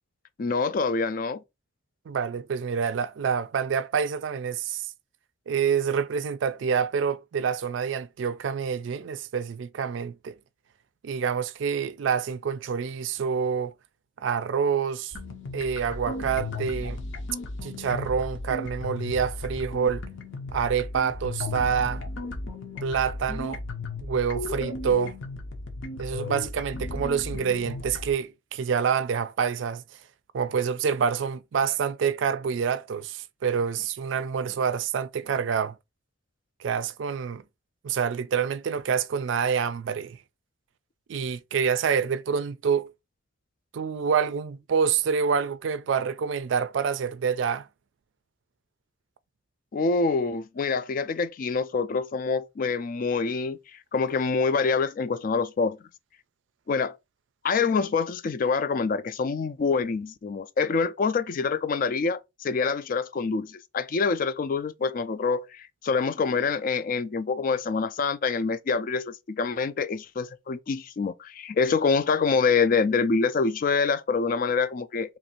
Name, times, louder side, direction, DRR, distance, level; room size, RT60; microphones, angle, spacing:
voice 1, 0.4-1.4 49.7-55.8 56.7-57.0 57.4-75.2, left 4 dB, 45° left, 0.3 m, -26 dB
voice 2, 2.1-4.9 5.5-10.3 11.0-13.7 14.2-15.2 15.5-17.0 17.6-20.0 20.5-22.0 22.8-23.6 24.0-25.2 26.0-29.8 30.3-35.8 36.6-37.4 37.8-40.2 41.1-42.9 43.7-47.7, right 6 dB, 70° right, 0.4 m, -27 dB
sound 1, 15.1-28.1, left 2 dB, 80° left, 0.9 m, -35 dB
3.0 x 2.6 x 4.2 m
head